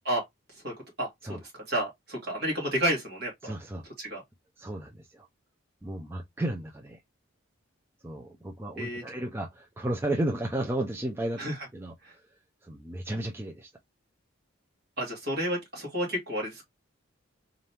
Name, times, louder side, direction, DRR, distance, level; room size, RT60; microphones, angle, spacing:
voice 1, 0.6-1.4 1.7-3.5 4.0-4.2 8.8-9.0 11.4-11.5 12.0-12.1 15.0-16.6, right 1 dB, 50° right, 2.1 m, -31 dB
voice 2, 3.4-3.9 4.6-5.3 5.8-7.0 8.0-12.3 12.6-13.7, right 1 dB, 10° right, 0.4 m, -33 dB
3.8 x 3.4 x 2.8 m
head